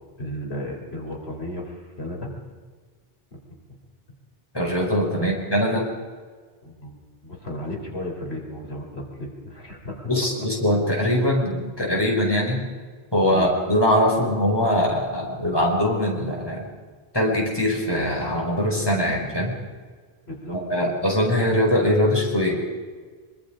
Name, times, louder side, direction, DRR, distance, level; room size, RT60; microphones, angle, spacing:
voice 1, 0.2-2.3 5.2-5.3 6.6-6.9 7.2-10.1 13.3-13.5 20.2-20.8, left 1 dB, 85° left, 0 dB, 4.4 m, -34 dB
voice 2, 4.5-5.9 10.1-12.6 13.1-16.7 17.1-19.5 20.7-22.6, left 1 dB, 25° left, -1 dB, 5.1 m, -22 dB
24.5 x 24.0 x 5.1 m, 1.5 s
omnidirectional pair, 1.0 m